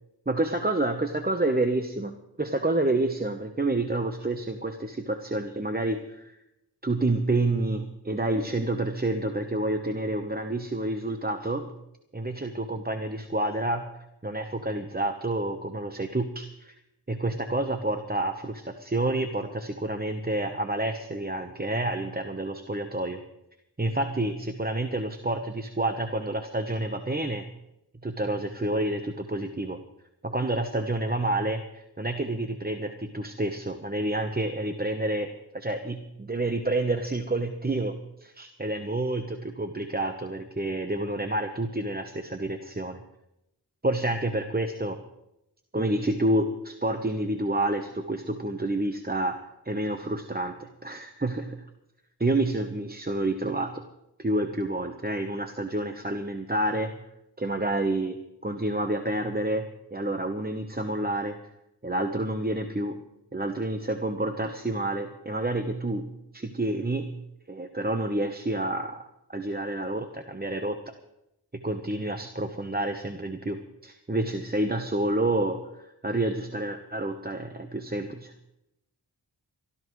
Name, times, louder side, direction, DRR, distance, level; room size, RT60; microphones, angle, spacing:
voice 1, 0.3-6.3 6.8-11.7 12.1-13.8 14.2-16.7 17.1-23.2 23.8-27.5 28.0-29.8 30.2-37.9 38.2-43.0 43.8-45.0 45.7-49.4 49.6-51.6 52.2-53.8 54.2-56.9 57.4-58.2 58.4-61.4 61.8-63.0 63.3-67.2 67.5-69.0 69.3-70.8 71.5-78.3, right 2 dB, 20° right, 6 dB, 1.0 m, -29 dB
23.0 x 13.5 x 3.2 m, 0.85 s
wide cardioid pair, 45°, 43 cm